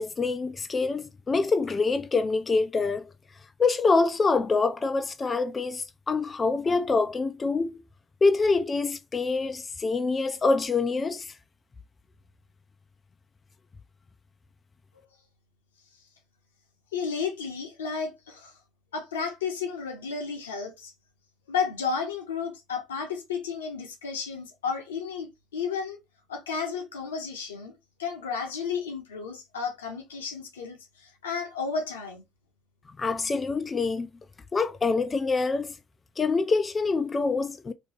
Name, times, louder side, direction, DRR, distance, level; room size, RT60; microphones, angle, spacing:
voice 1, 0.0-3.1 3.6-7.8 8.2-11.3 33.0-34.1 34.5-35.8 36.2-37.7, left 4 dB, 30° left, 0.4 m, -25 dB
voice 2, 16.9-18.5 18.9-20.9 21.5-26.0 26.3-27.7 28.0-32.2, left 5 dB, 90° left, 0.8 m, -32 dB
2.7 x 2.6 x 3.3 m
hypercardioid pair, 60°, 0 cm